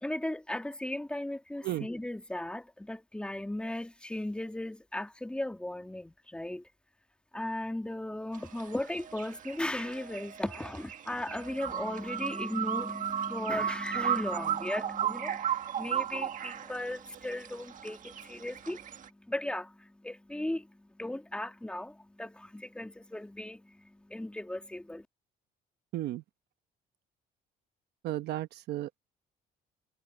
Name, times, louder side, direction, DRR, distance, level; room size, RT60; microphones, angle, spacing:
voice 1, 0.0-6.7 7.3-25.1, left 1 dB, 5° left, 2.0 m, -37 dB
sound 1, 8.3-19.1, right 9 dB, 50° right, 1.6 m, -36 dB
voice 2, 28.0-29.0, right 15 dB, 75° right, 1.1 m, -34 dB
cardioid pair, 110°, 17 cm